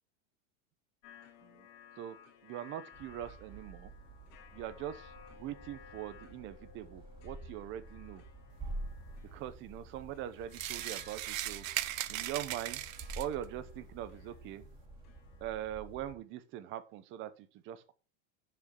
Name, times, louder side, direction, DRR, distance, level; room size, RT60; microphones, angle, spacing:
sound 1, 1.0-15.6, left 8 dB, 45° left, 2.6 m, -59 dB
voice 1, 2.4-3.9 4.5-8.2 9.3-11.7 12.1-12.8 13.2-14.7 15.4-17.9, right 12 dB, 30° right, 13 dB, 0.9 m, -42 dB
sound 2, 2.9-16.2, right 1 dB, 15° right, 2.1 m, -49 dB
sound 3, 10.5-13.4, right 14 dB, 80° right, 0.9 m, -38 dB
6.9 x 6.2 x 6.3 m, 0.36 s
supercardioid pair, 160°, 39 cm